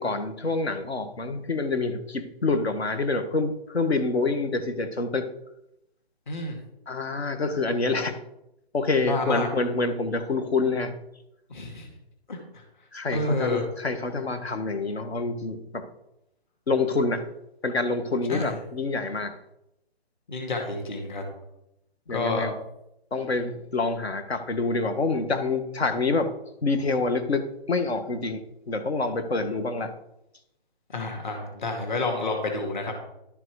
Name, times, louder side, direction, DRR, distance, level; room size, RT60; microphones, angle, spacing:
voice 1, 0.0-5.3 6.9-8.2 8.7-10.9 12.9-15.9 16.7-17.2 17.6-19.4 22.1-22.5 23.1-26.3 26.6-30.0, left 3 dB, 75° left, 8 dB, 1.7 m, -27 dB
voice 2, 6.3-6.6 9.0-9.5 11.5-11.9 12.3-12.6 13.1-13.6 18.3-18.6 20.3-21.2 22.1-22.4 30.9-32.9, left 2 dB, 50° left, 2 dB, 2.3 m, -29 dB
12.0 x 6.0 x 4.8 m, 0.84 s
hypercardioid pair, 165°, 32 cm